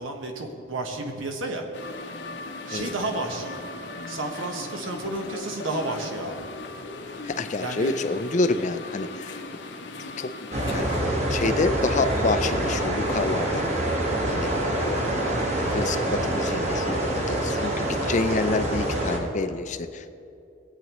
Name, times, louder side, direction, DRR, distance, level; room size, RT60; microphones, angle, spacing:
voice 1, 0.0-1.7 2.7-3.6 4.1-6.4 7.6-7.9, right 2 dB, 80° right, 3 dB, 1.2 m, -31 dB
sound 1, 1.7-11.0, left 2 dB, 60° left, 0.8 m, -38 dB
voice 2, 7.2-9.4 10.0-10.3 10.7-13.7 14.3-15.1 15.7-20.1, left 3 dB, 35° left, 10 dB, 0.5 m, -28 dB
sound 2, 10.5-19.2, right 1 dB, 35° right, 1.4 m, -26 dB
18.0 x 8.5 x 3.1 m, 2.6 s
head